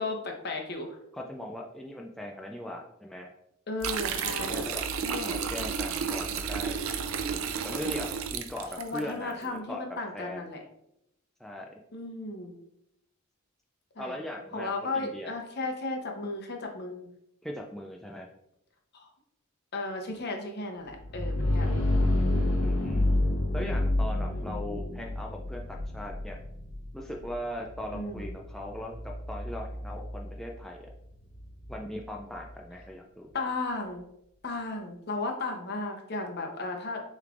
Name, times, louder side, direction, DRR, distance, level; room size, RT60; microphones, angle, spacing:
voice 1, 0.0-1.0 3.7-4.7 5.0-5.4 8.8-10.6 11.9-12.5 14.0-14.2 14.5-17.1 18.9-19.1 19.7-21.8 24.3-24.9 27.9-28.3 33.3-34.0 34.4-37.0, left 3 dB, 50° left, 3 dB, 0.8 m, -35 dB
voice 2, 1.1-3.3 4.4-6.8 7.3-9.8 10.1-10.5 11.4-11.8 14.0-15.3 17.4-18.3 22.6-23.1 23.5-26.4 26.9-30.9 31.7-33.3, left 1 dB, ahead, -1 dB, 0.3 m, -39 dB
sound 1, 3.8-9.0, right 6 dB, 75° right, 0.4 m, -32 dB
sound 2, 20.9-32.5, left 1 dB, 75° left, 0.8 m, -30 dB
6.6 x 3.2 x 2.5 m, 0.77 s
head